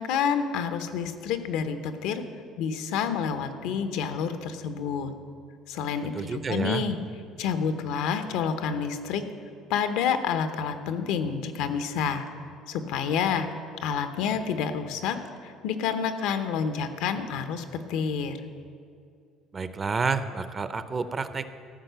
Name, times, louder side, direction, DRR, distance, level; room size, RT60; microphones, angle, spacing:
voice 1, 0.0-2.2 2.6-5.1 5.7-7.0 7.4-9.2 9.7-12.2 12.7-13.5 13.8-15.2 15.4-18.4, left 7 dB, 85° left, 9 dB, 0.9 m, -28 dB
voice 2, 6.1-6.8 19.5-21.5, right 4 dB, 25° right, 12 dB, 0.5 m, -29 dB
14.0 x 5.7 x 8.0 m, 2.3 s
cardioid pair, 140°, 0 cm